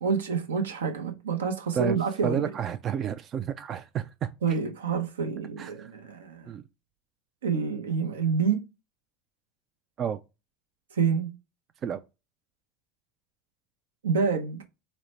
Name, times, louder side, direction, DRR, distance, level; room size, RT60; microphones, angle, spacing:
voice 1, 0.0-2.6 4.4-6.6 7.4-8.6 10.9-11.3 14.0-14.6, right 5 dB, 80° right, 0.6 m, -28 dB
voice 2, 2.2-4.3 5.6-5.9 6.5-6.6 10.0-10.2 11.8-12.0, right 8 dB, 40° right, 0.3 m, -30 dB
4.0 x 2.1 x 3.0 m
hypercardioid pair, 80°, 0 cm